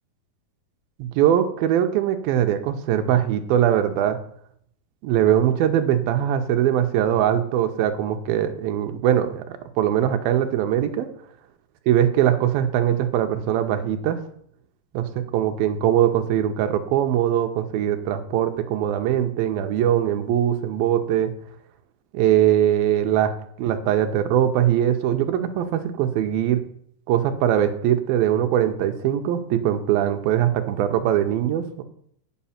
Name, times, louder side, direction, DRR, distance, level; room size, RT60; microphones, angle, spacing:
voice 1, 1.0-4.2 5.0-9.4 9.8-11.1 11.9-14.2 14.9-15.1 15.3-21.3 22.1-23.3 23.6-26.6 27.1-31.8, right 10 dB, 75° right, 7 dB, 2.5 m, -21 dB
8.5 x 7.8 x 5.7 m, 0.68 s
omnidirectional pair, 4.4 m